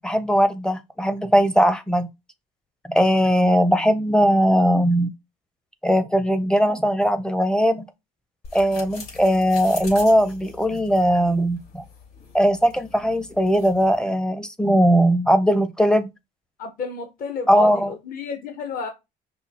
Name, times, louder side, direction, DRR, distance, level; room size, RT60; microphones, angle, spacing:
voice 1, 0.0-2.1 2.9-5.1 5.8-7.9 8.5-11.8 12.3-16.1 17.5-17.9, equal, 5° left, 0.5 m, -19 dB
sound 1, 8.4-14.0, left 5 dB, 70° left, 3.5 m, -43 dB
voice 2, 16.6-18.9, left 4 dB, 55° left, 1.0 m, -31 dB
5.5 x 2.3 x 4.1 m
cardioid pair, 110°, 17 cm